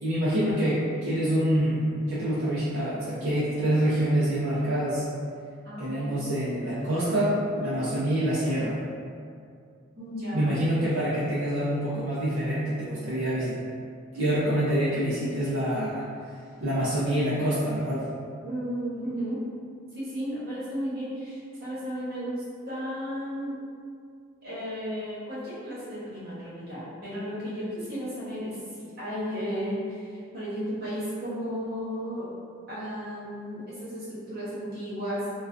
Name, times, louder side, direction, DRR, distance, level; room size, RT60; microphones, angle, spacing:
voice 1, 0.0-5.0 5.8-8.8 10.3-13.6 14.1-16.0 16.6-18.1, equal, 75° right, -10 dB, 0.5 m, -26 dB
voice 2, 5.6-6.1 10.0-10.6 18.4-19.4 19.9-23.6 24.4-32.3 32.7-35.3, equal, 50° right, -11 dB, 0.9 m, -34 dB
2.3 x 2.2 x 2.4 m, 2.2 s
head